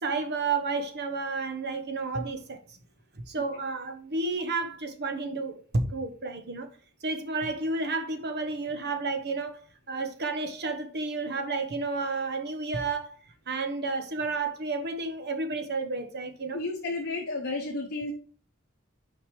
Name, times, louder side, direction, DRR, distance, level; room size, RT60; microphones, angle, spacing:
voice 1, 0.0-2.8 3.1-6.7 7.0-13.2 13.5-16.6, right 3 dB, 50° right, 1.2 m, -31 dB
voice 2, 16.5-18.1, left 2 dB, 50° left, 1.2 m, -32 dB
6.1 x 5.1 x 4.8 m
head